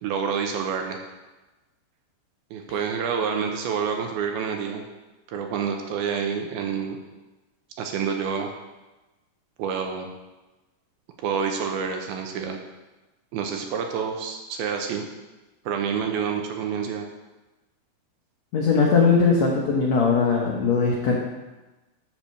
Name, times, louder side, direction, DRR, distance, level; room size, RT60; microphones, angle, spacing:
voice 1, 0.0-1.0 2.5-4.8 5.3-7.0 7.8-8.5 9.6-10.1 11.2-12.6 13.3-15.0 15.7-17.1, right 6 dB, 80° right, 3 dB, 2.5 m, -28 dB
voice 2, 18.5-21.2, left 5 dB, 75° left, -2 dB, 1.5 m, -20 dB
12.0 x 4.4 x 6.5 m, 1.1 s
omnidirectional pair, 4.8 m